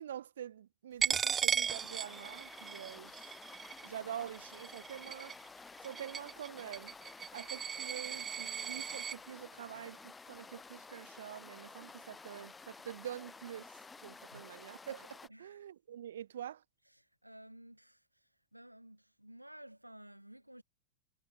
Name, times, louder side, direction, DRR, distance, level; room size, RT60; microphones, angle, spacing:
voice 1, 0.0-5.4 5.8-7.0 7.3-16.6, right 10 dB, 65° right, 1.7 m, -46 dB
Coin (dropping), 1.0-9.2, right 7 dB, 20° right, 1.0 m, -37 dB
sound 1, 1.7-15.3, left 4 dB, 15° left, 7.8 m, -52 dB
voice 2, 15.3-15.6 16.9-20.6, right 1 dB, 90° right, 5.4 m, -55 dB
figure-of-eight pair, 90°, 0 cm